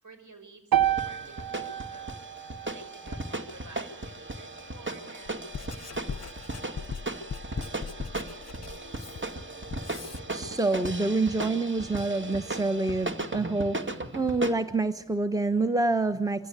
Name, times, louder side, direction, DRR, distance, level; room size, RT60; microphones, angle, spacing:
voice 1, 0.0-2.1 2.6-6.1, right 3 dB, 55° right, 7 dB, 6.3 m, -52 dB
sound 1, 0.7-4.9, right 11 dB, 80° right, 1.0 m, -31 dB
sound 2, 0.8-14.5, right 2 dB, 35° right, 2.3 m, -37 dB
Writing, 5.3-10.2, left 6 dB, 45° left, 0.8 m, -40 dB
voice 2, 10.3-16.5, right 3 dB, 10° right, 9 dB, 1.2 m, -27 dB
25.0 x 15.5 x 8.3 m, 0.80 s
cardioid pair, 45°, 35 cm